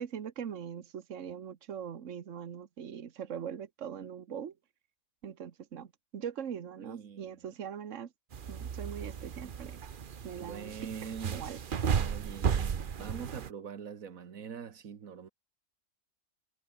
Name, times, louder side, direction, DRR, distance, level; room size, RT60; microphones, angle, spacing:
voice 1, 0.0-4.5 5.2-8.1 8.5-9.8 10.2-10.7 11.0-11.6, right 8 dB, 65° right, 1.5 m, -41 dB
voice 2, 6.8-7.4 10.4-11.5 11.9-15.3, right 7 dB, 90° right, 1.8 m, -44 dB
sound 1, 8.3-13.5, right 7 dB, 45° right, 0.9 m, -34 dB
omnidirectional pair, 1.4 m